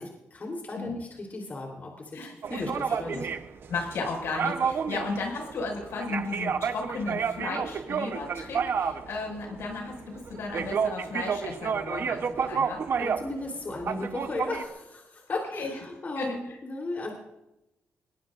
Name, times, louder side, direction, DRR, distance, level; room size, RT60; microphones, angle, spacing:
voice 1, 0.0-2.2 2.5-3.3 12.4-12.6 13.0-17.1, left 2 dB, 40° left, 0 dB, 3.7 m, -36 dB
voice 2, 2.1-2.7 3.1-3.2 3.7-12.9 15.3-15.8 16.2-16.4, left 3 dB, 80° left, 1 dB, 6.1 m, -34 dB
sound 1, 2.4-13.4 13.7-14.6, right 6 dB, 60° right, 1.0 m, -30 dB
21.0 x 20.5 x 2.6 m, 0.92 s
cardioid pair, 95°, 4 cm